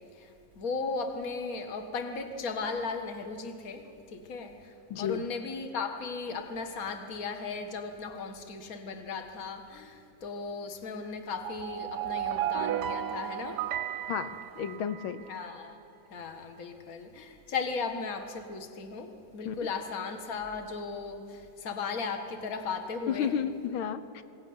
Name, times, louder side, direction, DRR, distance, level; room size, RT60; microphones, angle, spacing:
voice 1, 0.6-3.8 4.1-4.5 5.0-13.6 15.3-15.8 16.1-23.3, left 4 dB, 45° left, 6 dB, 1.9 m, -36 dB
voice 2, 4.9-5.2 8.1-8.2 14.1-15.3 19.4-19.7 23.1-24.2, left 8 dB, 85° left, 12 dB, 1.8 m, -32 dB
sound 1, 11.4-15.3, right 11 dB, 70° right, 1.1 m, -34 dB
20.5 x 17.5 x 9.5 m, 2.7 s
omnidirectional pair, 2.2 m